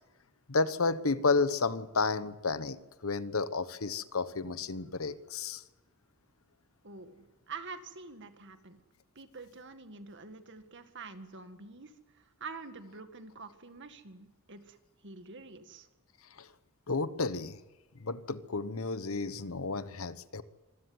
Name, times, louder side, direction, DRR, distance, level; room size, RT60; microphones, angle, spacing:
voice 1, 0.5-5.6 16.4-16.5 16.9-17.6 18.0-20.4, left 4 dB, 70° left, 1.1 m, -31 dB
voice 2, 6.8-8.8 9.2-14.8 15.0-15.9, right 4 dB, 55° right, 2.1 m, -47 dB
25.0 x 16.0 x 9.6 m
head